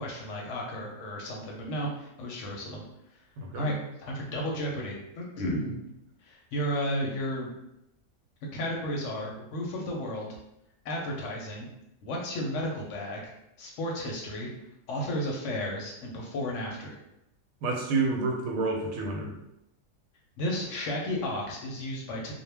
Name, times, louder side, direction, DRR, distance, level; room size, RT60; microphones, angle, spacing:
voice 1, 0.0-2.8 3.6-3.7 4.0-5.8 6.2-7.5 8.5-10.4 10.8-11.7 12.0-13.3 13.6-14.5 14.9-17.0 20.4-22.3, equal, 70° left, -1 dB, 0.8 m, -33 dB
voice 2, 3.4-3.7 17.6-19.3, right 3 dB, 80° right, 1 dB, 1.0 m, -29 dB
2.2 x 2.1 x 3.2 m, 0.84 s
omnidirectional pair, 1.5 m